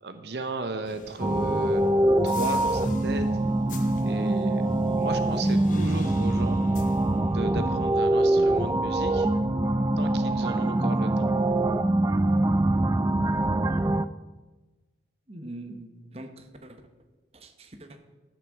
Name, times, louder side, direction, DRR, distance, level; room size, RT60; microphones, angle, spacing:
voice 1, 0.0-1.8 2.2-3.3 4.0-4.6 5.0-6.6 7.2-9.3 10.0-11.3, right 2 dB, 70° right, 8 dB, 0.8 m, -35 dB
sound 1, 0.8-9.5 9.8-10.9, left 2 dB, 45° left, 0.9 m, -44 dB
sound 2, 1.2-14.1, right 1 dB, 20° right, 0.3 m, -24 dB
voice 2, 15.3-16.8 17.3-18.0, right 1 dB, 35° right, 6 dB, 1.0 m, -43 dB
12.0 x 6.3 x 7.3 m, 1.2 s
head